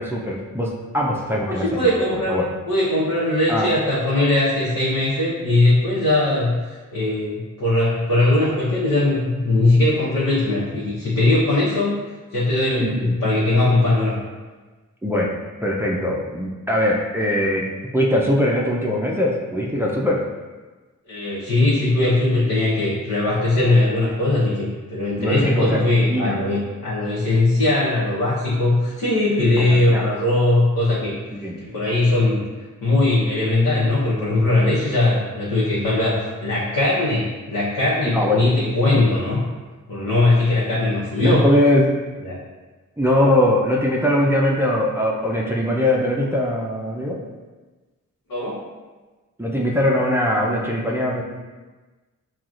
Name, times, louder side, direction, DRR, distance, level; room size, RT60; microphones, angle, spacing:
voice 1, 0.0-1.8 2.3-2.5 3.5-3.7 12.8-13.1 15.0-15.3 15.6-20.2 25.2-25.8 26.1-26.4 29.6-30.0 31.3-31.6 38.0-38.4 41.2-42.0 43.0-47.2 49.4-51.2, left 1 dB, 5° right, -3 dB, 0.5 m, -21 dB
voice 2, 1.5-2.4 2.7-11.9 12.3-14.2 21.1-31.1 31.7-32.4 32.8-39.4 39.9-41.5 42.2-42.4 48.3-48.6, left 2 dB, 70° left, -8 dB, 0.9 m, -20 dB
5.8 x 2.3 x 2.5 m, 1.3 s
cardioid pair, 70°, 33 cm